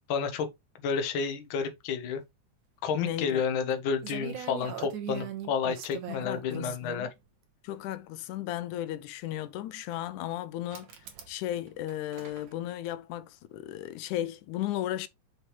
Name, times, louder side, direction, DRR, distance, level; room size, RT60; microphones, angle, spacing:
voice 1, 0.1-0.5 0.8-2.2 2.8-7.1, left 6 dB, 55° left, 1.6 m, -30 dB
voice 2, 2.9-3.5 6.1-7.1 7.6-11.0 11.3-15.1, left 13 dB, 85° left, 2.1 m, -35 dB
sound 1, 3.7-3.8 4.0-6.8 7.8-7.9 10.7-11.4 11.7-12.5, right 10 dB, 80° right, 2.8 m, -40 dB
6.7 x 6.2 x 3.2 m
omnidirectional pair, 3.4 m